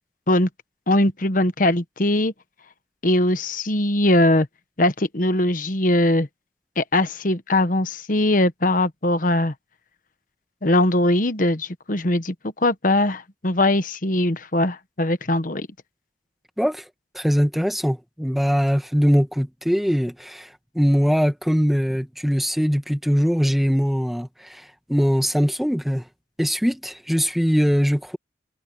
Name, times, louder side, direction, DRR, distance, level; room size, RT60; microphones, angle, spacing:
voice 1, 0.9-2.3 3.0-4.5 4.8-6.3 6.8-9.5 10.6-12.3 12.6-15.7, left 1 dB, 45° left, 1.3 m, -20 dB
voice 2, 16.6-16.9 17.1-26.0 26.4-28.2, equal, ahead, 1.7 m, -21 dB
head